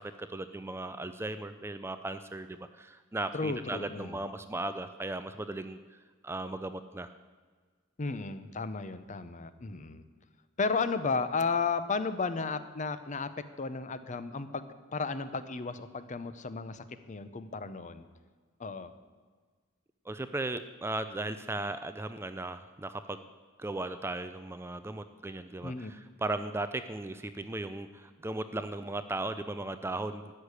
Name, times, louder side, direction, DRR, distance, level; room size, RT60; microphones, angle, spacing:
voice 1, 0.0-6.0 6.2-7.1 20.1-23.2 23.6-30.3, right 2 dB, 10° right, 10 dB, 0.4 m, -37 dB
voice 2, 3.3-4.2 8.0-10.0 10.6-18.1 18.6-18.9 25.6-25.9, left 4 dB, 35° left, 12 dB, 0.7 m, -34 dB
13.0 x 6.6 x 10.0 m, 1.5 s
head